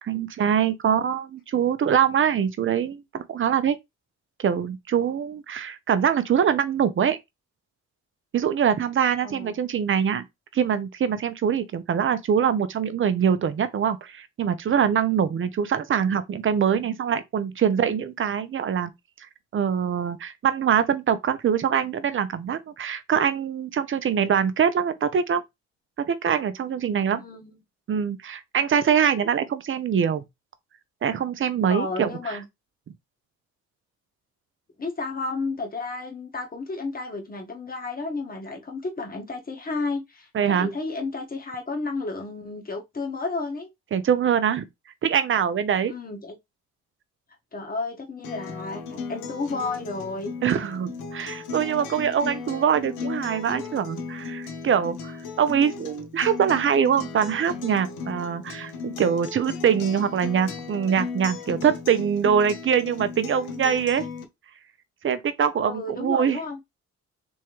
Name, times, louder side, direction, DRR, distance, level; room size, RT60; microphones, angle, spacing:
voice 1, 0.0-3.8 4.4-7.2 8.3-10.3 10.5-18.9 19.5-25.4 26.0-27.2 27.9-30.2 31.0-32.4 40.3-40.7 43.9-44.7 45.0-45.9 50.4-64.0 65.0-66.4, right 8 dB, 45° right, 0.7 m, -23 dB
voice 2, 27.2-27.6 31.7-32.4 34.8-43.7 45.9-46.3 47.5-50.3 65.6-66.6, left 3 dB, 30° left, 1.3 m, -32 dB
Acoustic guitar, 48.2-64.2, left 5 dB, 85° left, 0.9 m, -36 dB
3.6 x 3.1 x 3.0 m
cardioid pair, 90°, 30 cm